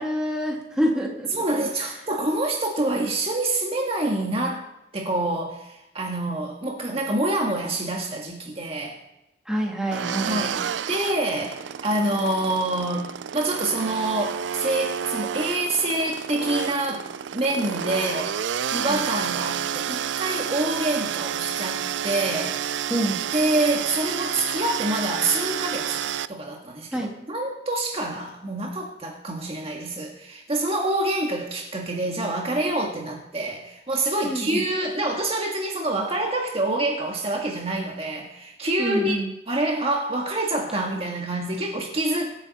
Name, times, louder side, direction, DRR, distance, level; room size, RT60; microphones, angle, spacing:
voice 1, 0.0-1.3 1.8-1.9 9.5-10.4 18.9-19.0 22.9-23.2 26.9-27.1 34.2-34.6 38.8-39.3, equal, 5° right, -2 dB, 2.5 m, -26 dB
voice 2, 1.3-4.7 4.9-9.0 10.3-17.0 17.3-22.6 23.3-27.0 27.3-39.2 39.5-42.3, right 2 dB, 35° right, 0 dB, 1.7 m, -26 dB
sound 1, 9.9-26.3, right 8 dB, 70° right, 0.4 m, -30 dB
23.5 x 9.0 x 4.2 m, 0.89 s
head